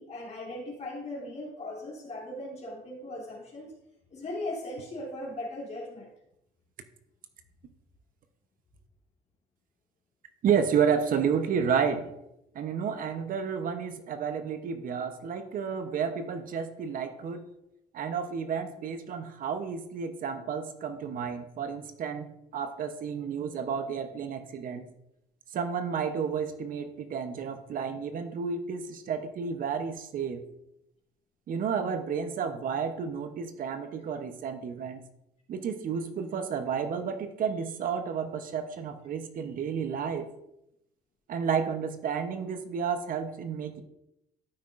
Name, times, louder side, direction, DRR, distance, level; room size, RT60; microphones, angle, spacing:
voice 1, 0.0-3.7 4.1-6.1, left 1 dB, 40° left, -3 dB, 2.8 m, -38 dB
voice 2, 10.4-12.1 12.5-17.4 17.9-24.9 25.5-30.4 31.5-35.0 35.5-40.3 41.3-43.8, right 6 dB, 55° right, 9 dB, 0.8 m, -31 dB
12.5 x 5.7 x 2.5 m, 0.83 s
cardioid pair, 110°, 17 cm